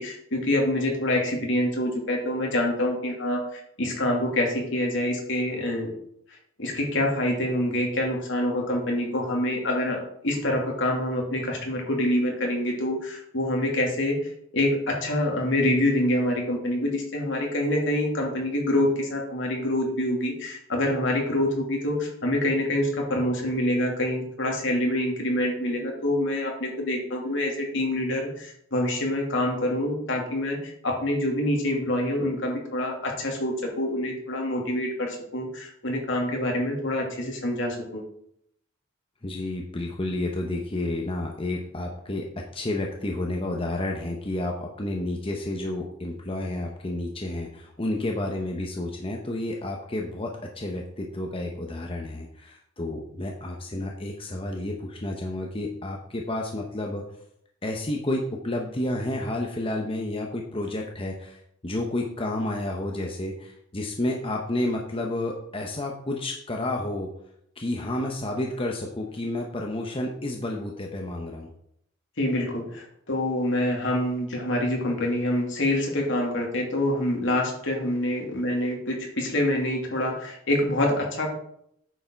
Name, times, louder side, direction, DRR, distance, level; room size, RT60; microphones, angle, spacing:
voice 1, 0.0-5.9 6.6-10.0 10.2-14.2 14.5-30.6 30.8-38.0 72.2-81.3, left 1 dB, 65° left, 0 dB, 2.7 m, -26 dB
voice 2, 39.2-57.0 57.6-67.1 67.6-71.5, left 1 dB, 25° left, 0 dB, 0.9 m, -30 dB
9.2 x 6.9 x 4.6 m, 0.73 s
head